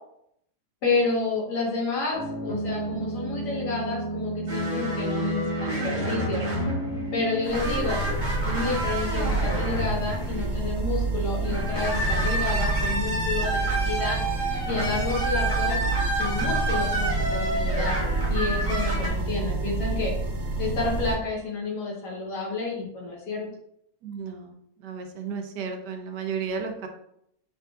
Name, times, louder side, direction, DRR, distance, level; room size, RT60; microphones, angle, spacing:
voice 1, 0.8-6.4 7.1-8.0 8.4-14.2 14.7-15.8 16.2-20.1 20.6-23.5, left 3 dB, 85° left, -3 dB, 1.9 m, -30 dB
sound 1, 2.1-7.5, right 2 dB, 40° left, 1.5 m, -32 dB
sound 2, 4.5-10.5 11.4-19.1, right 1 dB, 30° right, 1.1 m, -30 dB
sound 3, 7.4-21.1, right 3 dB, 55° right, 1.1 m, -28 dB
voice 2, 24.0-26.9, right 5 dB, 90° right, 5 dB, 1.3 m, -33 dB
5.6 x 3.5 x 2.4 m, 0.74 s
omnidirectional pair, 1.7 m